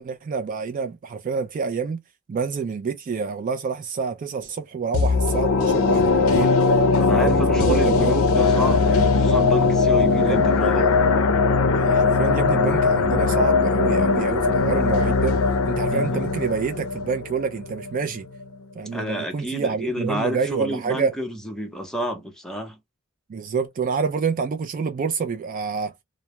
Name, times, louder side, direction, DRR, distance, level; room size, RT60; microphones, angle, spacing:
voice 1, 0.0-2.0 2.3-6.5 7.1-8.1 8.6-8.8 10.0-11.0 11.7-15.4 15.6-18.3 18.8-21.1 23.3-25.9, right 5 dB, 40° right, 0.3 m, -27 dB
sound 1, 4.9-18.0 18.3-18.4, left 4 dB, 75° left, 0.5 m, -20 dB
voice 2, 7.0-10.8 15.9-16.3 18.9-22.8, equal, 5° left, 0.6 m, -29 dB
2.2 x 2.0 x 2.8 m
head